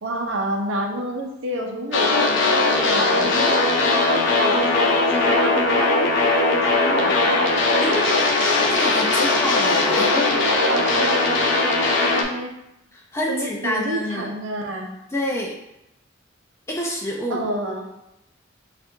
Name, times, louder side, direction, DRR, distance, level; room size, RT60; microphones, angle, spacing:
voice 1, 0.0-6.0 6.5-7.4 7.7-7.9 9.9-12.5 13.3-14.9 17.3-17.9, right 1 dB, 75° right, 2 dB, 0.7 m, -29 dB
sound 1, 1.9-12.2, left 3 dB, 65° left, 0.6 m, -19 dB
voice 2, 7.8-10.4 12.9-14.3 15.1-15.6 16.7-17.4, left 1 dB, 15° left, -2 dB, 0.4 m, -28 dB
3.4 x 2.5 x 4.3 m, 0.86 s
head